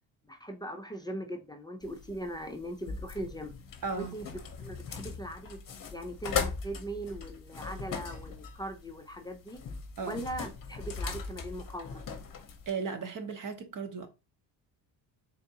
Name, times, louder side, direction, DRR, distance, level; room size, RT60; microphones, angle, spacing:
voice 1, 0.3-3.5 3.9-4.2 4.6-5.6 5.9-9.6 10.0-12.0, right 1 dB, 10° left, 0.4 m, -40 dB
sound 1, 1.8-12.7, left 5 dB, 40° left, 0.9 m, -39 dB
voice 2, 3.8-4.2 10.0-10.2 12.7-14.1, right 5 dB, 40° right, 0.9 m, -35 dB
3.8 x 3.4 x 2.8 m
cardioid pair, 95°, 49 cm